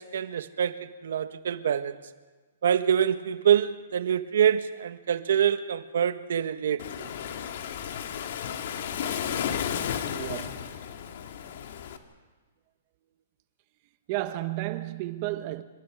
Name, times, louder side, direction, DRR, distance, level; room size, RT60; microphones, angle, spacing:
voice 1, 0.0-2.0 2.6-7.1, right 9 dB, 70° right, 1.5 m, -25 dB
Waves surf, 6.8-12.0, left 8 dB, 60° left, 2.2 m, -33 dB
voice 2, 10.1-10.7 14.1-15.6, right 16 dB, 35° right, 1.3 m, -32 dB
29.5 x 26.5 x 5.0 m
hypercardioid pair, 160°, 0 cm